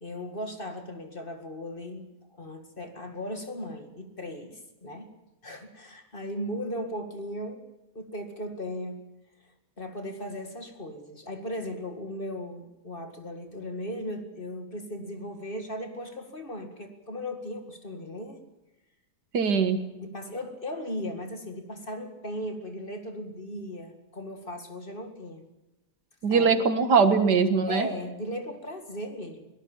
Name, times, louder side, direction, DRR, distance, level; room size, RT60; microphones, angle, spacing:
voice 1, 0.0-5.1 5.4-7.6 7.9-9.0 9.8-18.4 20.0-25.5 26.3-26.7 27.7-29.5, equal, 30° left, 6 dB, 2.2 m, -37 dB
voice 2, 19.3-19.8 26.2-27.9, right 5 dB, 75° right, 10 dB, 2.1 m, -21 dB
23.0 x 18.0 x 7.2 m, 0.94 s
omnidirectional pair, 1.8 m